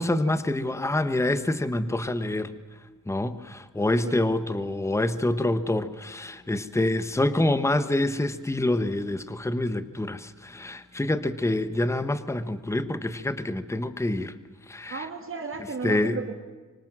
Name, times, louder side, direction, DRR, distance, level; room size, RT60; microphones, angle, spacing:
voice 1, 0.0-2.5 3.1-14.4 14.7-15.1 15.8-16.2, left 1 dB, 10° left, 12 dB, 1.1 m, -26 dB
voice 2, 14.9-16.4, right 4 dB, 40° right, 4 dB, 2.7 m, -34 dB
25.0 x 24.5 x 7.5 m, 1.3 s
wide cardioid pair, 140°, 31 cm